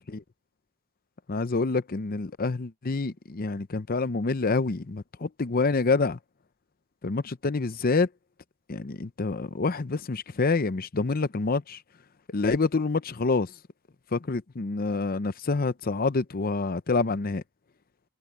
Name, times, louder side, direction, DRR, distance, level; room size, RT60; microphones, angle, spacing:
voice 1, 1.3-6.2 7.0-8.1 8.7-11.8 12.3-13.5 14.1-17.4, left 3 dB, 40° left, 0.7 m, -27 dB
head